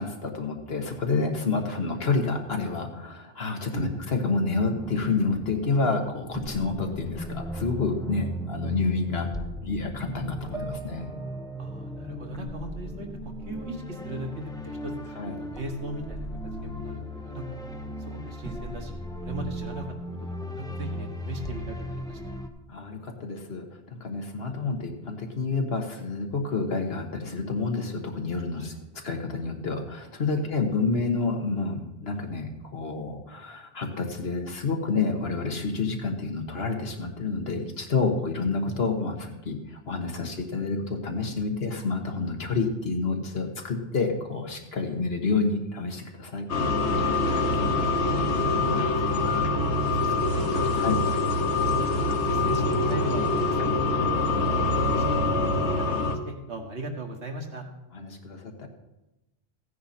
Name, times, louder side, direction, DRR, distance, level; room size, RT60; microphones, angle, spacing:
voice 1, 0.0-9.3 9.6-11.1 15.2-15.4 22.7-28.7 29.0-46.5 50.8-51.0 54.0-54.1 57.9-58.7, left 4 dB, 65° left, 3 dB, 1.6 m, -29 dB
voice 2, 3.7-4.0 11.6-16.3 16.6-17.5 18.0-19.9 20.2-22.3 28.6-28.7 30.3-30.7 47.3-49.2 49.5-51.9 52.1-53.7 54.0-57.7, right 1 dB, 80° right, 2 dB, 1.9 m, -39 dB
sound 1, 4.8-22.5, equal, 5° left, 0.8 m, -36 dB
sound 2, 10.5-13.9 14.3-15.4, right 4 dB, 35° right, 1.1 m, -46 dB
sound 3, 46.5-56.1, left 2 dB, 85° left, 1.4 m, -24 dB
15.5 x 9.5 x 4.3 m, 0.95 s
omnidirectional pair, 1.1 m